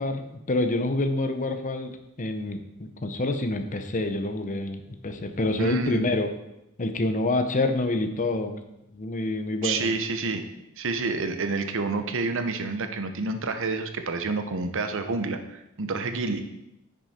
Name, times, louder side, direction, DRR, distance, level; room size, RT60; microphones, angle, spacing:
voice 1, 0.0-6.3 6.8-8.6 8.9-9.9, left 2 dB, 35° left, 8 dB, 0.8 m, -27 dB
voice 2, 5.6-6.0 9.6-10.4 10.8-16.4, right 3 dB, 65° right, 8 dB, 0.9 m, -28 dB
10.0 x 6.5 x 4.3 m, 0.87 s
head